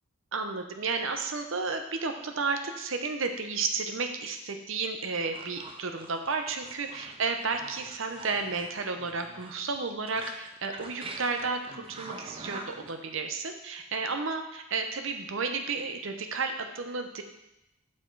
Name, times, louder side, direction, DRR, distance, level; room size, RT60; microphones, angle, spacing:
voice 1, 0.3-17.2, right 4 dB, 60° right, 6 dB, 0.7 m, -32 dB
sound 1, 5.1-12.9, right 2 dB, 25° right, 0.4 m, -45 dB
5.9 x 4.7 x 4.6 m, 0.88 s
head